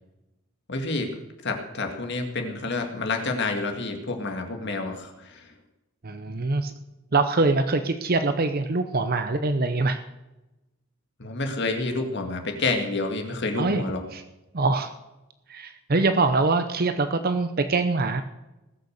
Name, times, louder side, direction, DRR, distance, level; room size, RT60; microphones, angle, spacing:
voice 1, 0.7-1.1 1.4-5.4 11.2-14.0, left 3 dB, 55° left, 4 dB, 1.9 m, -29 dB
voice 2, 6.0-6.7 7.1-10.0 13.6-13.9 14.1-14.2 14.5-14.9 15.5-18.2, right 3 dB, 45° right, 9 dB, 0.7 m, -24 dB
20.0 x 6.7 x 6.5 m, 1.0 s
head